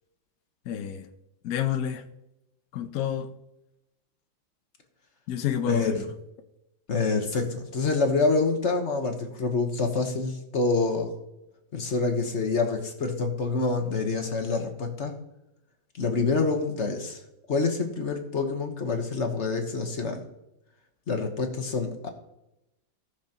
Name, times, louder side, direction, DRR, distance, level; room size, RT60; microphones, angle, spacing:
voice 1, 0.7-1.1 1.4-2.0 2.7-3.3 5.3-6.0, left 9 dB, 65° left, 0.9 m, -29 dB
voice 2, 6.9-11.1 11.7-15.2 16.0-17.2 17.5-20.2 21.1-22.1, left 4 dB, 40° left, 1.3 m, -27 dB
18.0 x 6.6 x 2.9 m
omnidirectional pair, 2.1 m